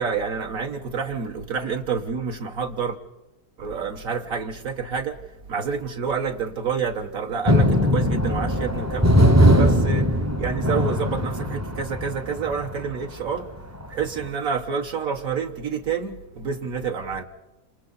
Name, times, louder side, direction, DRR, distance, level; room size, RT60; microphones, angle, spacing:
voice 1, 0.0-3.0 3.6-5.2 5.5-9.0 9.3-10.1 10.4-13.5 13.9-17.2, right 6 dB, 65° right, 1.5 m, -28 dB
sound 1, 7.4-12.8 13.8-13.9 14.2-14.3, equal, 20° right, 0.5 m, -20 dB
29.0 x 26.5 x 4.0 m
omnidirectional pair, 1.7 m